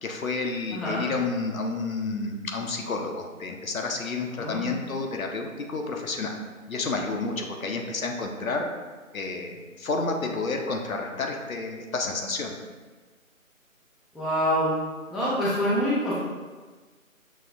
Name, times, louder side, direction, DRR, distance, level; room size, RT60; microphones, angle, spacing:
voice 1, 0.0-6.4 6.7-8.7 9.1-12.6, left 3 dB, 75° left, 2 dB, 0.7 m, -30 dB
voice 2, 0.7-1.0 4.3-4.8 14.1-14.7 15.1-16.2, equal, ahead, -10 dB, 0.4 m, -26 dB
6.1 x 2.2 x 2.5 m, 1.4 s
figure-of-eight pair, 160°, 42 cm